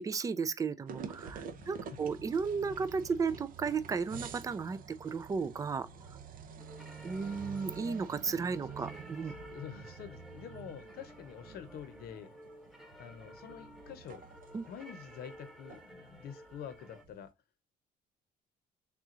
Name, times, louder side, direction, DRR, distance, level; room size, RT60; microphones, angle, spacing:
voice 1, 0.0-5.9 7.0-9.3 14.5-14.6, right 5 dB, 20° right, 0.4 m, -34 dB
sound 1, 0.9-17.3, right 6 dB, 55° right, 0.7 m, -49 dB
voice 2, 1.6-2.1 9.5-12.3 13.0-14.2 14.7-17.3, left 8 dB, 65° left, 0.8 m, -47 dB
sound 2, 6.6-17.0, equal, ahead, 0.8 m, -53 dB
3.6 x 3.0 x 3.7 m
cardioid pair, 110°, 17 cm